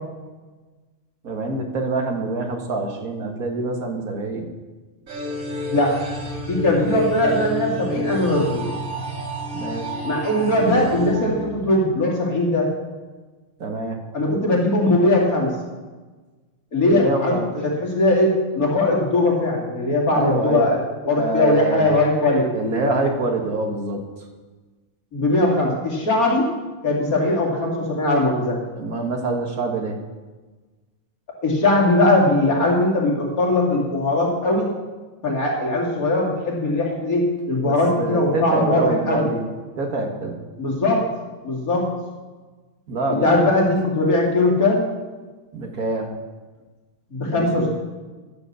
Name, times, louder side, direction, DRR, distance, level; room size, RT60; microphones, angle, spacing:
voice 1, 1.2-4.5 9.5-9.9 13.6-14.0 16.9-17.5 20.1-20.7 21.1-22.0 22.5-24.0 28.8-30.0 37.6-39.4 39.8-40.4 42.9-43.4 45.5-46.1 47.3-47.7, right 2 dB, 85° right, 2 dB, 2.1 m, -25 dB
sound 1, 5.1-12.1, equal, 70° right, 2.9 m, -30 dB
voice 2, 6.5-8.7 10.0-12.7 14.1-15.6 16.7-20.8 21.1-22.5 25.1-26.5 26.8-28.6 31.4-34.7 35.2-39.3 40.6-41.0 41.4-41.9 43.1-44.9 47.1-47.7, left 2 dB, 85° left, -2 dB, 3.1 m, -20 dB
12.0 x 8.0 x 6.9 m, 1.3 s
omnidirectional pair, 1.5 m